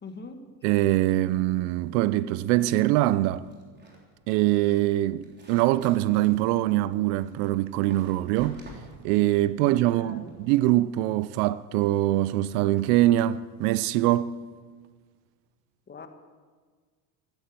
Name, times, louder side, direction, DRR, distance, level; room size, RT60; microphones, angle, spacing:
voice 1, 0.0-0.5 9.6-10.3 15.9-16.1, left 3 dB, 20° left, 1.5 m, -43 dB
voice 2, 0.6-3.5 4.3-8.6 9.0-14.3, right 15 dB, 70° right, 0.7 m, -23 dB
sound 1, 3.4-10.4, right 1 dB, 20° right, 3.7 m, -49 dB
14.5 x 10.5 x 7.8 m
supercardioid pair, 115°, 47 cm